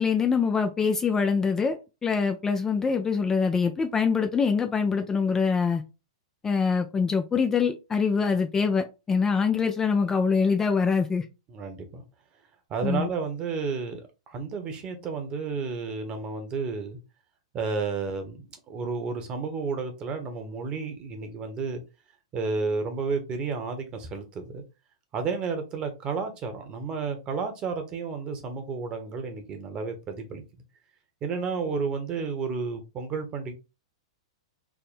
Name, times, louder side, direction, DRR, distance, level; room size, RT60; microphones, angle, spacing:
voice 1, 0.0-1.8 2.0-5.8 6.4-11.3 12.8-13.1, left 5 dB, 15° left, 0.5 m, -24 dB
voice 2, 11.5-12.0 12.7-17.0 17.5-21.8 22.3-24.6 25.1-30.4 31.2-33.5, right 4 dB, 30° right, 1.1 m, -31 dB
3.6 x 2.1 x 4.1 m
hypercardioid pair, 110°, 3 cm